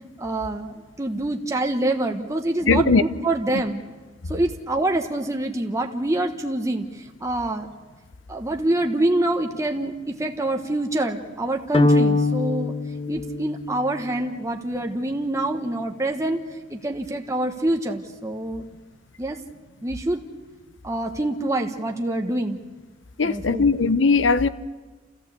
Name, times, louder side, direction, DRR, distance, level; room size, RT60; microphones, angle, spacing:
voice 1, 0.2-3.8 4.3-7.7 8.3-12.8 13.1-16.4 16.7-18.6 19.2-19.4 19.8-20.2 20.8-22.6 23.2-23.7, right 1 dB, 15° right, 1.1 m, -26 dB
voice 2, 2.7-3.0 23.2-24.5, left 4 dB, 80° left, 0.8 m, -19 dB
sound 1, 11.7-14.1, left 2 dB, 30° left, 1.1 m, -22 dB
29.0 x 14.5 x 8.2 m
head